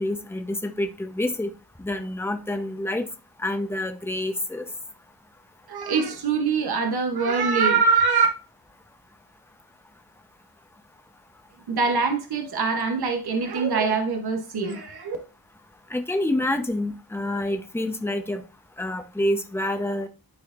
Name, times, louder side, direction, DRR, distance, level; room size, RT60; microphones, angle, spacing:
voice 1, 0.0-1.5 1.8-3.1 3.4-4.6 15.9-18.4 18.8-20.1, left 1 dB, 5° left, 0.7 m, -27 dB
voice 2, 5.7-8.3 11.7-15.2, right 4 dB, 85° right, 0.9 m, -23 dB
11.5 x 4.2 x 2.4 m
wide cardioid pair, 125°, 37 cm